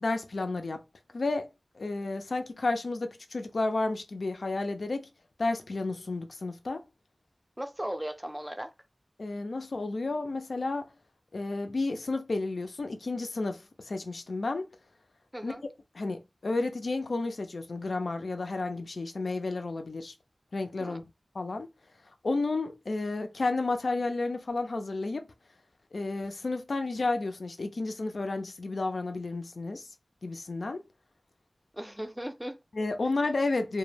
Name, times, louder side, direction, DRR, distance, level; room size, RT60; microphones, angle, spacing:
voice 1, 0.0-0.8 1.1-1.5 1.8-5.1 5.4-6.8 9.2-10.9 11.3-14.7 15.4-15.5 16.0-20.1 20.5-21.0 21.4-21.7 22.2-25.3 25.9-29.9 30.2-30.8 32.8-33.8, left 3 dB, 80° left, 0.4 m, -31 dB
voice 2, 7.6-8.7 15.3-15.6 20.8-21.0 31.7-32.6, equal, 10° right, 0.4 m, -37 dB
2.1 x 2.0 x 3.2 m
wide cardioid pair, 45°, 0 cm